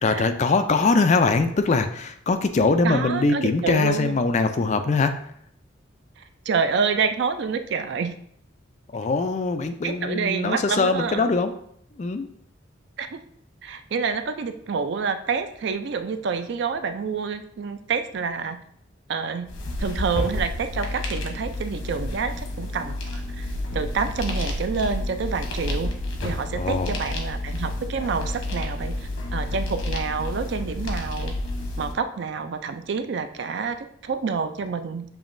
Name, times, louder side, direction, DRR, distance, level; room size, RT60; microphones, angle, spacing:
voice 1, 0.0-5.1 8.9-11.5 12.0-12.3 26.6-26.9, left 3 dB, 35° left, 8 dB, 0.3 m, -22 dB
voice 2, 2.8-4.2 6.2-8.1 9.8-11.2 13.0-13.2 13.6-18.6 19.1-19.5 19.8-23.5 23.7-25.9 26.2-31.3 31.8-35.0, right 5 dB, 60° right, 9 dB, 0.4 m, -28 dB
sound 1, 19.5-31.9, left 1 dB, 85° left, 0.9 m, -30 dB
7.0 x 2.9 x 2.6 m, 0.67 s
head